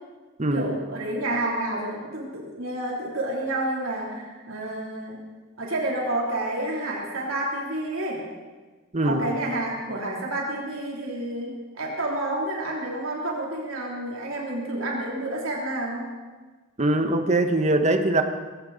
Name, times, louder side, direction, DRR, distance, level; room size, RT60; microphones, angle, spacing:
voice 1, 0.5-5.2 5.6-8.2 9.0-16.1, right 1 dB, 85° right, -3 dB, 3.2 m, -29 dB
voice 2, 8.9-9.2 16.8-18.2, right 2 dB, 35° right, 7 dB, 1.2 m, -22 dB
20.5 x 16.5 x 4.1 m, 1.3 s
head